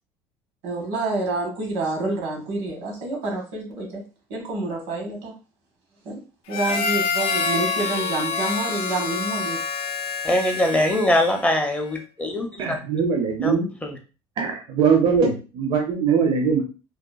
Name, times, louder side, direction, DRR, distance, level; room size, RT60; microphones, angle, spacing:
voice 1, 0.6-4.0 4.3-5.3 6.0-6.2 6.5-9.6, right 2 dB, 85° right, 1 dB, 1.1 m, -28 dB
Harmonica, 6.5-11.5, left 5 dB, 60° left, 0.4 m, -27 dB
voice 2, 10.2-12.7 13.4-13.5 13.8-14.0, left 1 dB, 15° left, 4 dB, 0.5 m, -22 dB
voice 3, 12.6-13.7 14.4-16.6, right 6 dB, 55° right, 1 dB, 0.5 m, -21 dB
2.8 x 2.2 x 2.2 m, 0.33 s
supercardioid pair, 100°, 11 cm